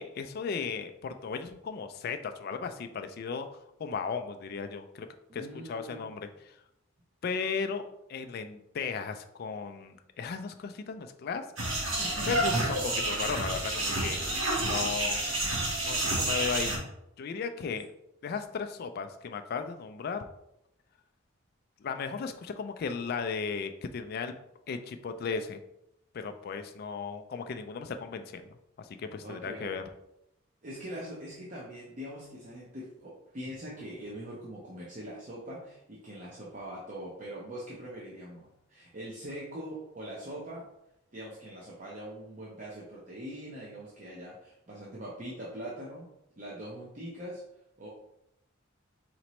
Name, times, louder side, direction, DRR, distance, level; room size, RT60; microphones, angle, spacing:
voice 1, 0.0-3.5 3.8-5.1 5.3-6.5 7.2-11.5 11.9-12.0 12.3-14.2 14.6-15.2 15.8-16.8 17.2-17.9 18.2-20.2 21.8-24.3 24.7-25.6 26.1-28.4 28.8-29.8, left 5 dB, 50° left, 7 dB, 0.3 m, -35 dB
voice 2, 5.3-6.2 11.9-13.0 14.3-14.9 29.2-29.9 30.6-40.7 41.1-47.4 47.8-47.9, equal, 40° right, -5 dB, 0.7 m, -43 dB
sound 1, 11.6-16.8, right 1 dB, 70° right, 1.2 m, -29 dB
4.2 x 3.0 x 3.0 m, 0.82 s
head